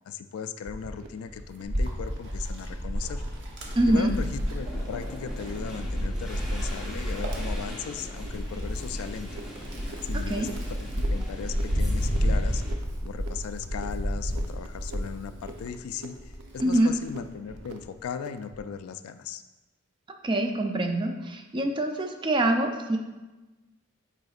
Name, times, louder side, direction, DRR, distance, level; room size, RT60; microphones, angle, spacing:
voice 1, 0.0-3.2 3.9-9.3 10.0-10.5 10.8-12.6 13.0-19.4, left 7 dB, 70° left, 10 dB, 0.3 m, -37 dB
sound 1, 0.6-18.7, right 2 dB, 80° right, 0.6 m, -48 dB
sound 2, 0.8-12.7, equal, ahead, 1.3 m, -44 dB
Wind, 1.6-15.7 16.2-17.7, equal, 55° right, 1.0 m, -31 dB
voice 2, 3.8-4.1 10.3-10.5 16.6-16.9 20.2-23.0, right 1 dB, 20° right, 4 dB, 0.5 m, -24 dB
7.7 x 5.0 x 2.4 m, 1.1 s
head